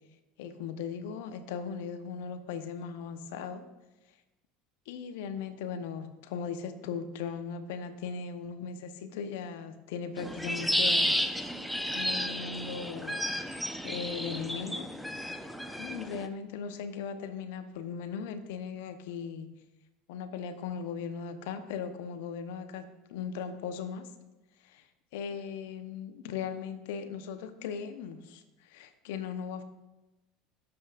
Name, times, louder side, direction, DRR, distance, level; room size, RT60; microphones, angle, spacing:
voice 1, 0.4-3.7 4.9-11.2 11.9-13.3 13.8-15.0 15.8-19.6 20.1-24.1 24.6-24.8 25.1-29.6, left 6 dB, 70° left, 10 dB, 0.9 m, -38 dB
sound 1, 10.2-16.3, equal, ahead, 0.9 m, -32 dB
17.0 x 7.8 x 2.5 m, 1.0 s
hypercardioid pair, 75°, 0 cm